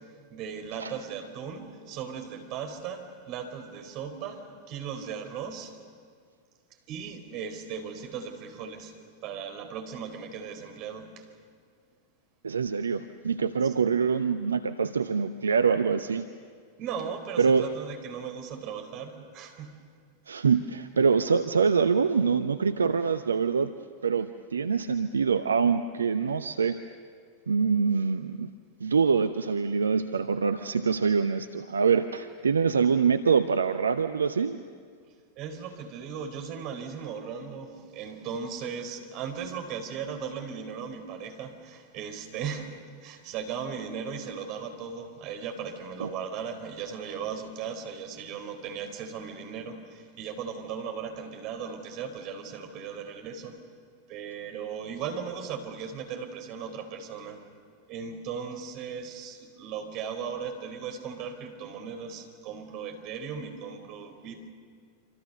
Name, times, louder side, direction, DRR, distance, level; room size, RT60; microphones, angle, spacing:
voice 1, 0.0-5.8 6.9-9.0 9.2-11.3 13.6-13.7 16.8-19.8 35.4-53.7 54.1-57.5 57.9-64.5, right 6 dB, 40° right, 5 dB, 4.0 m, -37 dB
voice 2, 12.4-16.2 17.4-17.7 20.3-23.7 24.0-26.8 27.5-28.5 28.8-34.6 46.0-46.1, right 5 dB, 70° right, 9 dB, 0.7 m, -25 dB
27.0 x 27.0 x 6.7 m, 2.1 s
figure-of-eight pair, 90°, 0 cm